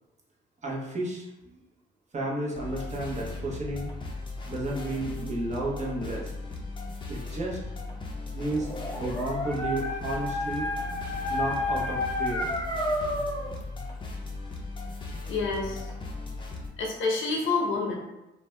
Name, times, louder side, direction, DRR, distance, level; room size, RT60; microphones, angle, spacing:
voice 1, 0.6-1.6 2.1-3.9 4.5-6.3 7.1-7.6 8.3-8.7 9.0-10.7 11.3-12.5 13.0-13.1, right 1 dB, 35° right, -4 dB, 0.9 m, -32 dB
sound 1, 2.5-16.7, left 3 dB, 25° left, 0.5 m, -37 dB
Dog, 8.5-13.5, left 1 dB, 10° left, 1.1 m, -31 dB
voice 2, 15.3-16.1 16.8-18.0, left 3 dB, 75° left, 0 dB, 0.6 m, -28 dB
2.6 x 2.1 x 3.2 m, 0.94 s
cardioid pair, 90°, 20 cm